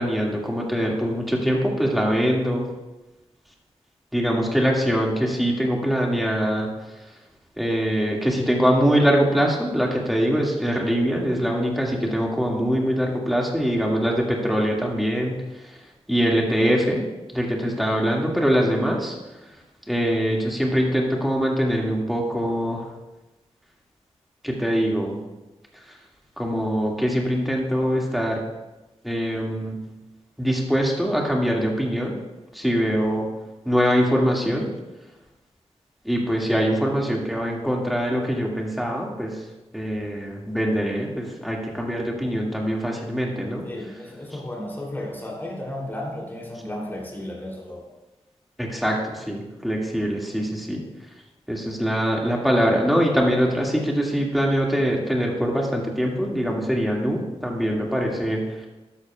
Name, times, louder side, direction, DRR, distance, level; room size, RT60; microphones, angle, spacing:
voice 1, 0.0-2.7 4.1-6.7 7.6-15.4 16.1-17.0 17.3-19.2 19.9-22.9 24.4-25.2 26.4-28.4 29.0-29.8 30.4-32.2 32.5-33.3 33.7-34.7 36.0-39.3 39.7-43.7 48.6-50.8 51.5-58.4, equal, ahead, -2 dB, 2.0 m, -23 dB
voice 2, 43.6-47.8, left 1 dB, 20° left, -2 dB, 2.9 m, -33 dB
12.5 x 10.5 x 2.3 m, 1.1 s
wide cardioid pair, 90°, 11 cm